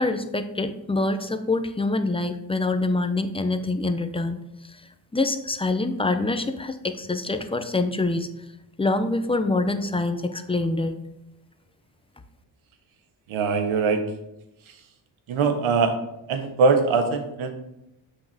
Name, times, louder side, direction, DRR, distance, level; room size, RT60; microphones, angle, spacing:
voice 1, 0.0-4.8 5.1-8.3 8.8-11.0, left 2 dB, 10° left, 9 dB, 0.6 m, -25 dB
voice 2, 13.3-14.0 15.3-16.0 16.3-17.5, right 4 dB, 75° right, 6 dB, 1.3 m, -22 dB
7.8 x 5.8 x 3.5 m, 0.88 s
cardioid pair, 95°, 48 cm